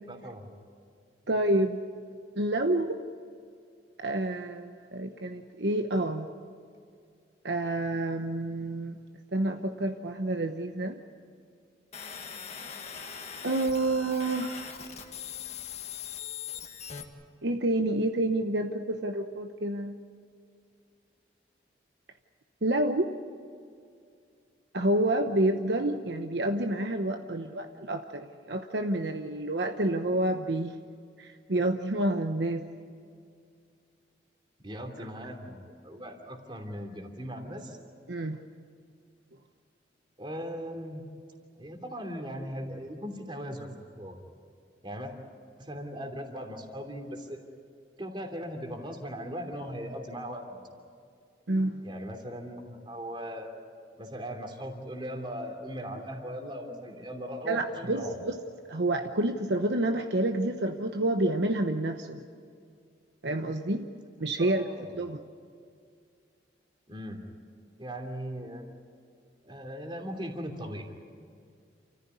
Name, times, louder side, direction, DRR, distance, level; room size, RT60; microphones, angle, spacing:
voice 1, 0.1-0.4 34.6-37.8 40.2-41.0 41.5-43.7 44.0-44.2 44.8-45.1 45.6-47.4 48.0-50.6 51.8-53.5 54.0-58.2 64.4-64.9 66.9-67.2 67.8-68.6 69.4-70.8, equal, 25° right, 3 dB, 2.9 m, -38 dB
voice 2, 1.3-1.8 2.4-3.0 4.0-6.3 7.4-9.0 9.3-11.0 13.4-14.7 17.4-20.0 22.6-23.1 24.7-30.7 31.2-32.6 38.1-38.4 51.5-51.8 57.5-58.3 58.7-62.2 63.2-63.9 64.2-64.6 64.9-65.2, right 1 dB, 65° right, 5 dB, 1.0 m, -28 dB
sound 1, 11.9-17.0, left 7 dB, 35° left, 1.7 m, -41 dB
29.0 x 14.5 x 9.6 m, 2.3 s
head